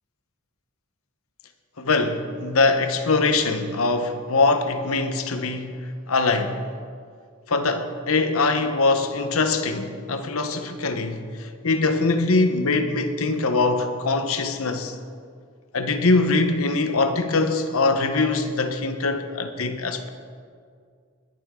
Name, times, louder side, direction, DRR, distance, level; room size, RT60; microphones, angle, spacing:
voice 1, 1.8-5.7 6.1-6.6 7.5-14.9 15.7-20.1, left 3 dB, 80° left, 1.0 m, -22 dB
20.5 x 10.5 x 3.8 m
head